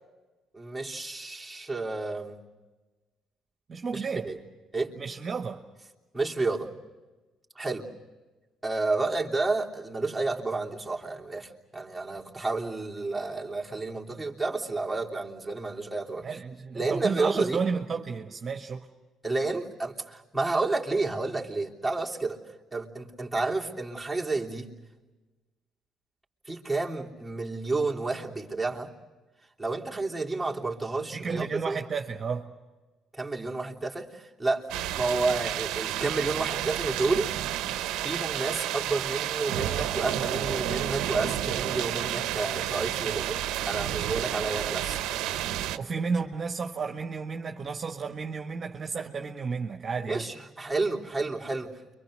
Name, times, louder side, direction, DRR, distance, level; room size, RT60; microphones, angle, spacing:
voice 1, 0.5-2.4 3.9-4.4 4.7-5.0 6.1-6.7 7.5-7.9 8.6-16.4 16.7-17.6 19.2-22.4 22.7-24.7 26.4-28.9 29.6-31.8 33.1-34.6 34.9-37.3 38.0-45.0 50.1-51.9, right 3 dB, 5° right, 3.3 m, -30 dB
voice 2, 3.7-4.3 5.0-5.6 16.2-18.9 31.1-32.5 45.7-50.2, right 5 dB, 40° right, 1.6 m, -32 dB
sound 1, 34.7-45.8, right 12 dB, 85° right, 1.0 m, -30 dB
30.0 x 24.5 x 6.5 m
cardioid pair, 85°, 0 cm